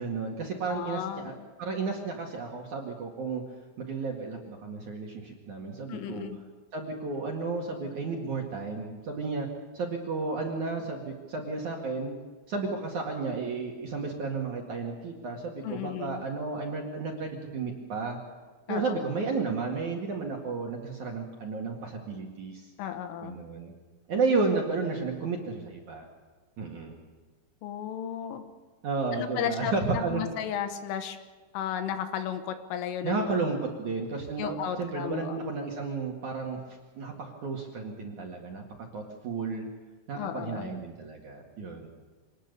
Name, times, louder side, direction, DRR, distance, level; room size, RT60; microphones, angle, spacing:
voice 1, 0.0-1.3 1.6-3.4 3.8-6.3 6.7-9.5 9.7-12.2 12.5-18.2 18.7-22.7 23.2-23.7 24.1-26.1 26.6-27.0 28.8-30.2 33.0-38.6 38.9-39.7 40.1-41.9, right 4 dB, 50° right, 0 dB, 2.6 m, -32 dB
voice 2, 0.7-1.4 5.9-6.4 15.6-16.2 18.7-19.1 22.8-23.4 27.6-28.4 29.1-31.2 31.5-33.4 34.4-35.4 40.1-40.7, left 9 dB, 75° left, 8 dB, 3.8 m, -34 dB
25.5 x 19.5 x 6.8 m, 1.3 s
omnidirectional pair, 5.9 m